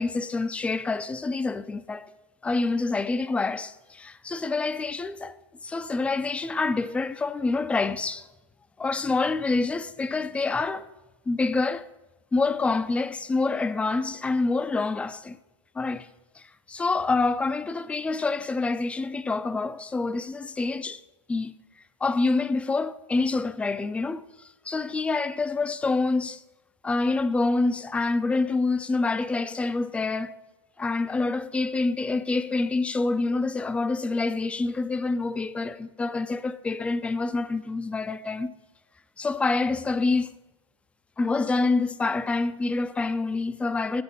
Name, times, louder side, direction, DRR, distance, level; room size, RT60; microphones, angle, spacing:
voice 1, 0.0-2.1 2.4-5.4 5.6-8.3 8.8-10.9 11.3-11.9 12.3-15.4 15.8-16.1 16.4-16.5 16.7-21.0 21.3-21.5 22.0-26.4 26.8-30.3 30.8-38.5 39.2-40.3 41.2-44.0, left 3 dB, 10° left, 0.3 m, -27 dB
9.4 x 4.2 x 6.7 m
hypercardioid pair, 110°, 16 cm